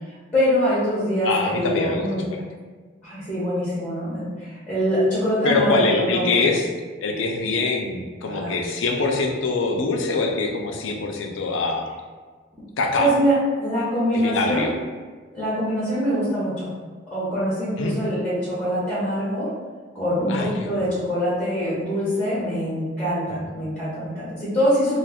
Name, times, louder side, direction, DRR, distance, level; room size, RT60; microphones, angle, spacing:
voice 1, 0.3-2.2 3.0-6.3 8.3-8.5 13.0-13.3 13.6-14.7 15.3-16.7 17.1-19.5 19.9-25.0, equal, 5° left, -10 dB, 0.8 m, -24 dB
voice 2, 1.2-2.4 5.4-6.7 7.0-11.9 12.8-13.1 14.1-14.7 17.8-18.2 20.3-20.9 23.3-23.4, left 3 dB, 85° left, 2 dB, 0.5 m, -24 dB
2.5 x 2.3 x 3.5 m, 1.4 s
head